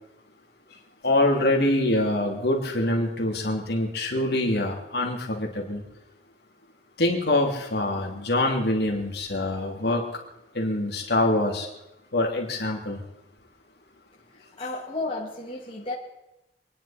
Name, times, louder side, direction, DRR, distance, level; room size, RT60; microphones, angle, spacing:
voice 1, 1.0-5.8 7.0-10.0 10.5-11.7 12.1-13.0, left 1 dB, 60° left, 0 dB, 3.0 m, -25 dB
voice 2, 14.3-15.9, left 2 dB, 30° left, -4 dB, 2.4 m, -33 dB
27.5 x 10.5 x 4.4 m, 0.91 s
head